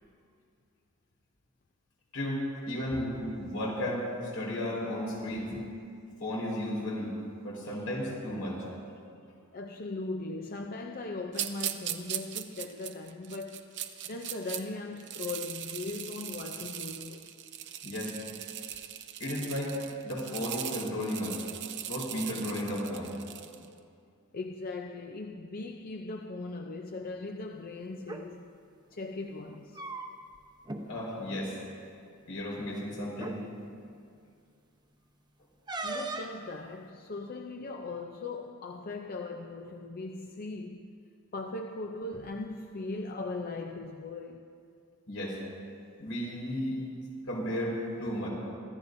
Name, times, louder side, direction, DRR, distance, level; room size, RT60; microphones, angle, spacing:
voice 1, 2.1-5.5 6.2-7.1 7.4-8.6 17.8-18.1 19.2-19.8 20.0-21.4 21.9-23.1 30.8-31.5 32.3-33.4 45.1-45.4 46.0-46.8 47.3-48.3, left 1 dB, 75° left, 4.5 m, -34 dB
voice 2, 9.5-13.7 14.0-17.2 24.3-28.5 28.9-29.8 35.8-41.0 41.3-44.5, left 3 dB, 45° left, 0.5 m, -39 dB
sound 1, 11.3-14.6 15.0-23.7, right 11 dB, 55° right, 0.7 m, -39 dB
sound 2, 28.0-28.2 29.5-30.4 30.7-30.8 31.2-31.4 32.4-32.5 33.1-33.4 35.7-36.4, right 2 dB, 20° right, 0.9 m, -38 dB
25.0 x 14.0 x 2.6 m
head